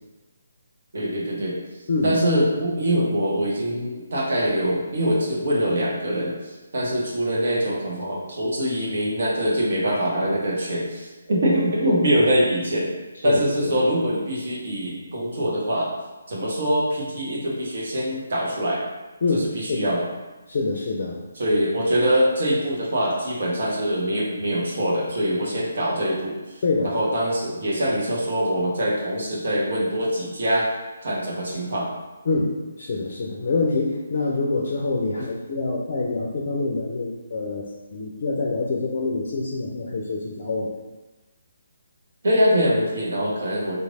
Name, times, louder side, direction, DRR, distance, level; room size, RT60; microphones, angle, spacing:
voice 1, 0.9-1.6 2.0-12.9 13.2-15.9 16.3-18.8 19.3-20.0 21.4-26.4 26.8-30.7 31.0-31.9 35.2-35.3 42.2-43.8, equal, 55° right, -3 dB, 1.1 m, -23 dB
voice 2, 13.2-13.7 19.2-19.9 20.5-21.2 26.6-26.9 32.3-32.5 32.8-40.7, left 3 dB, 45° left, -2 dB, 0.5 m, -25 dB
3.1 x 2.6 x 3.6 m, 1.1 s
figure-of-eight pair, 140°, 0 cm